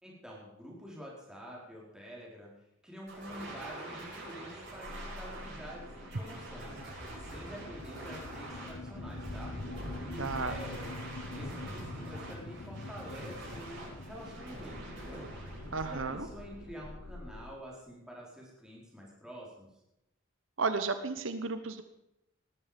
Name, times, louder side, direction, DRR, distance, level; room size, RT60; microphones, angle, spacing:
voice 1, 0.0-2.5 2.8-6.8 7.2-9.5 10.0-10.9 11.3-15.3 15.8-19.7, equal, 5° right, -4 dB, 4.8 m, -47 dB
sound 1, 3.1-16.9, right 1 dB, 60° right, 8.0 m, -45 dB
sound 2, 4.8-17.6, left 2 dB, 70° left, 1.0 m, -45 dB
voice 2, 10.2-10.6 15.7-16.3 20.6-21.8, right 4 dB, 75° right, 10 dB, 1.1 m, -33 dB
19.0 x 13.0 x 5.3 m, 0.85 s
head